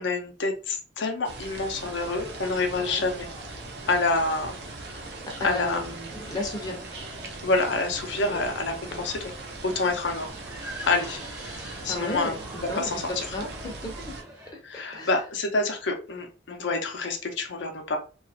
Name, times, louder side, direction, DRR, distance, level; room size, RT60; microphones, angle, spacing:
voice 1, 0.0-3.3 3.9-5.9 7.4-9.3 9.6-10.3 10.9-13.2 14.6-18.0, left 3 dB, 75° left, 4 dB, 0.6 m, -28 dB
sound 1, 1.2-14.2, right 3 dB, 60° right, 0.5 m, -40 dB
sound 2, 1.8-14.5, right 1 dB, 20° right, 0.6 m, -45 dB
voice 2, 5.4-6.8 8.3-8.5 8.9-9.0 11.9-12.4 12.7-14.1 14.5-15.1, left 2 dB, 20° left, -1 dB, 0.5 m, -34 dB
2.8 x 2.4 x 2.6 m, 0.34 s
head